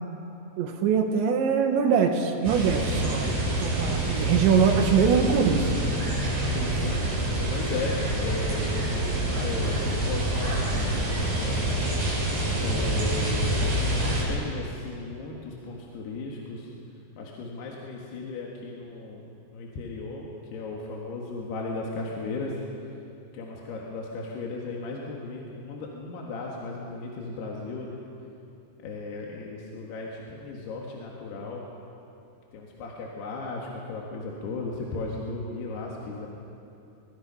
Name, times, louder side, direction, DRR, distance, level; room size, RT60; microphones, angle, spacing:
voice 1, 0.6-3.3 3.6-5.7, right 6 dB, 75° right, 4 dB, 3.7 m, -23 dB
sound 1, 2.4-14.2, right 1 dB, 35° right, 7.4 m, -27 dB
voice 2, 6.6-7.2 7.5-9.0 9.3-11.7 12.6-13.5 14.0-16.7 17.2-19.2 19.5-20.3 20.5-22.5 23.3-28.0 28.8-31.6 32.5-36.3, left 3 dB, 65° left, -2 dB, 3.6 m, -36 dB
22.5 x 22.0 x 5.5 m, 2.7 s
omnidirectional pair, 5.2 m